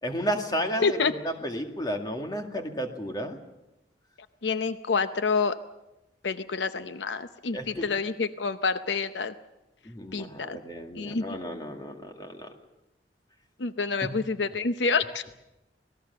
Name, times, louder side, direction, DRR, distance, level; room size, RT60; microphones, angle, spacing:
voice 1, 0.0-3.4 7.5-7.9 9.8-12.5 14.0-14.2, equal, 25° left, 4 dB, 2.2 m, -32 dB
voice 2, 4.4-5.5 6.2-9.3 10.1-10.6 11.0-11.3 13.6-15.2, left 4 dB, 80° left, 11 dB, 0.8 m, -28 dB
26.0 x 18.5 x 6.9 m, 0.93 s
head